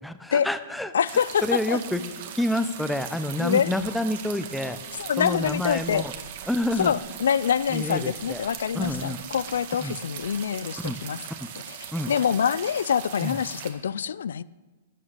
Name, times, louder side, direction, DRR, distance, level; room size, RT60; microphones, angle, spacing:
voice 1, 0.0-0.9 1.4-2.0 2.3-4.8 5.2-6.1 6.5-6.9 7.7-8.4 8.7-9.2 9.8-10.0 10.8-11.0 11.9-12.1 13.2-13.4, left 1 dB, 5° left, 11 dB, 0.7 m, -28 dB
voice 2, 0.9-1.8 3.4-3.7 5.0-6.0 6.8-11.2 12.1-14.4, left 8 dB, 80° left, 20 dB, 0.3 m, -25 dB
sound 1, 1.0-13.7, right 8 dB, 55° right, 1.9 m, -40 dB
12.5 x 6.3 x 8.9 m, 1.3 s
hypercardioid pair, 130°, 0 cm